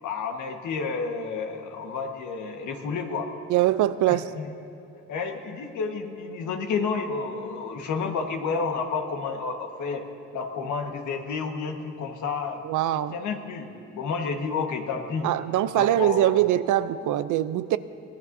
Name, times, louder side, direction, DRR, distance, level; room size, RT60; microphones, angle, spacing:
voice 1, 0.0-3.3 4.1-4.5 5.1-10.0 10.3-12.6 12.9-13.7 13.9-15.3 15.7-16.4, left 5 dB, 75° left, 4 dB, 1.5 m, -30 dB
voice 2, 3.5-4.3 12.6-13.2 15.2-17.8, right 13 dB, 80° right, 14 dB, 0.6 m, -23 dB
23.5 x 17.5 x 2.7 m, 2.6 s
cardioid pair, 90°, 30 cm